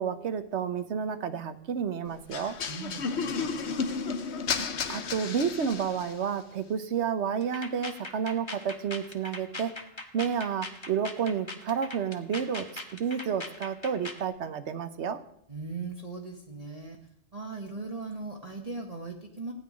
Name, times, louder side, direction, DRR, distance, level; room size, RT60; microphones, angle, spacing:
voice 1, 0.0-2.6 4.6-9.7 10.1-12.6 12.9-15.2, right 7 dB, 65° right, 11 dB, 1.2 m, -30 dB
sound 1, 2.3-6.2, left 5 dB, 60° left, 1.2 m, -32 dB
voice 2, 2.7-4.0 15.5-17.0 17.3-19.5, right 3 dB, 30° right, 0 dB, 1.3 m, -39 dB
sound 2, 7.4-14.3, left 2 dB, 25° left, 1.1 m, -41 dB
15.5 x 5.8 x 9.7 m, 0.74 s
omnidirectional pair, 1.3 m